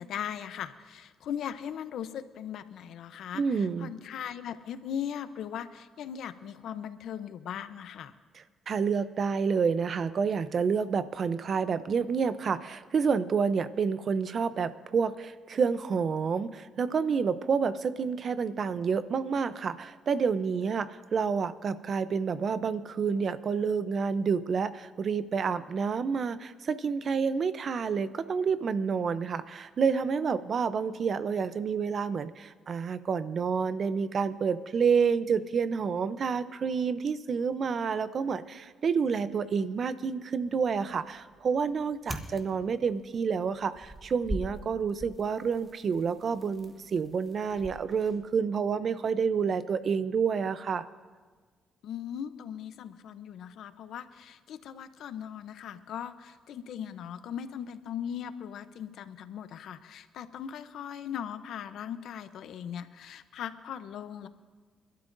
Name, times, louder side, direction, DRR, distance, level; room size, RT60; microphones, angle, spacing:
voice 1, 0.0-8.2 51.8-64.3, left 9 dB, 75° left, 12 dB, 0.7 m, -39 dB
voice 2, 3.3-3.9 8.7-50.8, right 6 dB, 50° right, 14 dB, 0.6 m, -29 dB
sound 1, 40.4-48.5, equal, 5° right, 1.4 m, -44 dB
29.5 x 12.5 x 2.6 m, 1.5 s
cardioid pair, 90°, 0 cm